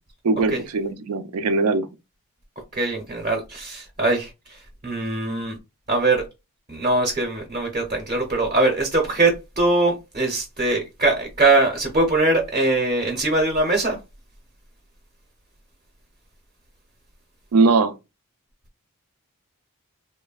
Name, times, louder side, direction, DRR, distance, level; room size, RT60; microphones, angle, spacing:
voice 1, 0.2-1.9 17.5-18.0, right 3 dB, 80° right, 0.4 m, -20 dB
voice 2, 2.7-4.3 4.8-5.6 5.9-6.2 6.7-14.0, right 2 dB, 35° right, 0.7 m, -21 dB
3.0 x 2.1 x 2.3 m
head